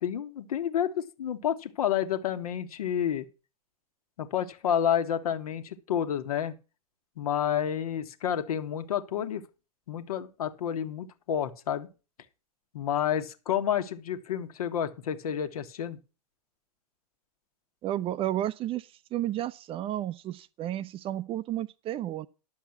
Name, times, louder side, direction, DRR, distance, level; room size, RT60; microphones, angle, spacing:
voice 1, 0.0-3.3 4.2-6.6 7.2-9.4 9.9-11.9 12.7-16.0, left 9 dB, 70° left, 1.6 m, -30 dB
voice 2, 17.8-22.3, right 13 dB, 30° right, 0.5 m, -32 dB
11.0 x 7.1 x 5.9 m
figure-of-eight pair, 95°, 20 cm